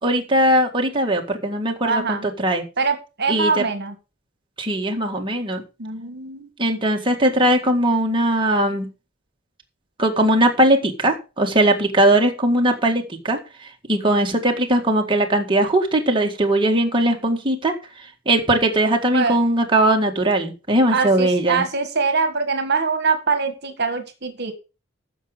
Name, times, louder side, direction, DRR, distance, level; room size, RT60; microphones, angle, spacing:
voice 1, 0.0-2.6 3.3-3.6 4.6-5.6 6.6-8.9 10.0-13.4 13.9-17.7 18.3-21.6, right 1 dB, 25° right, 2 dB, 1.8 m, -19 dB
voice 2, 1.8-2.3 2.8-3.9 5.8-6.5 19.1-19.4 20.9-24.5, right 4 dB, 55° right, 8 dB, 1.7 m, -23 dB
14.5 x 6.2 x 5.0 m, 0.31 s
head